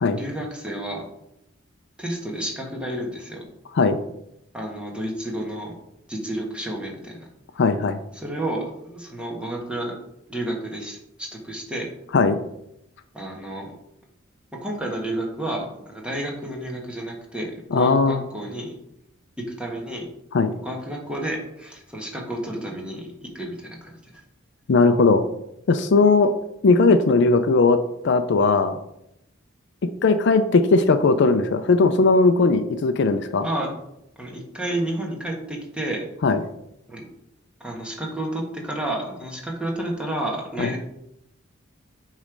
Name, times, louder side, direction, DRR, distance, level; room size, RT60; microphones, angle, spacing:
voice 1, 0.1-1.1 2.0-3.4 4.5-5.7 6.1-7.3 8.1-9.9 10.3-11.9 13.1-13.7 14.5-18.8 19.4-20.1 20.6-24.2 33.4-33.8 34.2-36.0 36.9-37.1 37.6-40.8, right 1 dB, 5° right, -1 dB, 1.3 m, -31 dB
voice 2, 7.6-8.0 12.1-12.4 17.7-18.2 20.3-20.5 24.7-25.2 25.7-26.3 26.6-27.8 28.0-28.8 29.8-33.5 36.2-36.4 40.6-40.7, left 3 dB, 60° left, 10 dB, 0.4 m, -18 dB
8.2 x 3.2 x 5.1 m, 0.81 s
head